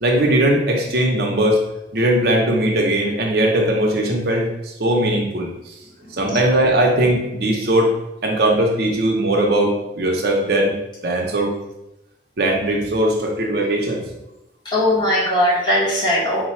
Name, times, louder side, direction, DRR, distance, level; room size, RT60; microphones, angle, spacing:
voice 1, 0.0-1.6 1.9-5.5 6.2-7.9 8.2-10.7 11.0-11.5 12.4-14.0, right 1 dB, 55° right, 0 dB, 0.6 m, -19 dB
voice 2, 14.6-16.4, left 1 dB, 25° left, -7 dB, 1.0 m, -19 dB
3.9 x 2.2 x 4.3 m, 0.91 s
head